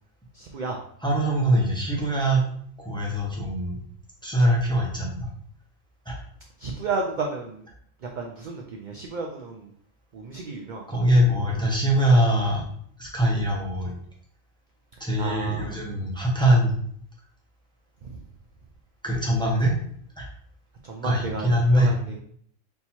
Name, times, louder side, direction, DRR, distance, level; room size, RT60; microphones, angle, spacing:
voice 1, 0.3-0.8 6.6-7.6 8.0-9.7 10.1-11.0 11.3-11.4 15.2-15.8 18.0-18.2 20.8-22.2, right 3 dB, 65° right, 1 dB, 0.5 m, -33 dB
voice 2, 1.0-2.5 2.8-3.8 4.2-5.3 6.1-6.2 10.9-12.6 13.0-13.9 15.0-16.7 19.0-19.8 20.2-20.3 21.0-21.9, right 1 dB, 5° left, -2 dB, 0.8 m, -22 dB
3.7 x 2.8 x 4.3 m, 0.64 s
omnidirectional pair, 1.3 m